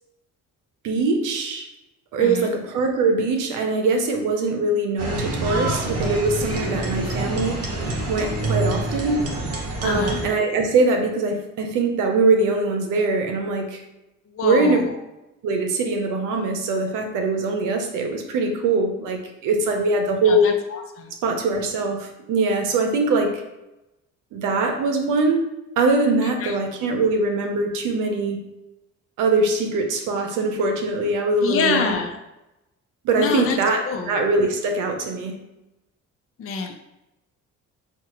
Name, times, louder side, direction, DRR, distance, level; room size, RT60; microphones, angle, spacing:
voice 1, 0.8-1.7 2.1-7.6 8.1-9.2 9.8-13.8 14.4-14.8 15.4-20.6 21.2-23.4 24.3-25.4 25.8-28.4 29.2-31.9 33.0-35.4, right 3 dB, 90° right, 4 dB, 0.7 m, -22 dB
voice 2, 2.2-2.5 9.8-10.2 14.3-14.9 20.2-21.1 26.2-26.5 31.4-32.1 33.2-33.6 33.8-34.1 36.4-36.8, left 5 dB, 45° left, 3 dB, 0.6 m, -26 dB
sound 1, 5.0-10.3, right 2 dB, 55° right, 1.0 m, -27 dB
5.8 x 2.4 x 2.9 m, 0.93 s
cardioid pair, 90°, 30 cm